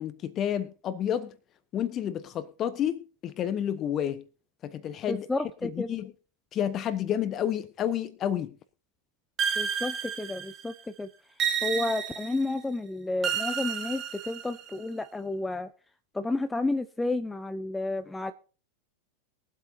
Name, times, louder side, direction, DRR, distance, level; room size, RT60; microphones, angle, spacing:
voice 1, 0.0-1.4 1.7-4.2 4.6-5.3 5.6-6.1 6.5-8.5, left 10 dB, 30° left, 1.2 m, -30 dB
voice 2, 5.1-5.9 9.6-11.1 11.6-15.7 16.1-18.3, left 2 dB, 10° left, 0.6 m, -31 dB
sound 1, 9.4-10.7 11.4-12.5 13.2-14.8, right 7 dB, 30° right, 1.5 m, -31 dB
22.0 x 8.2 x 2.8 m
figure-of-eight pair, 90°, 0 cm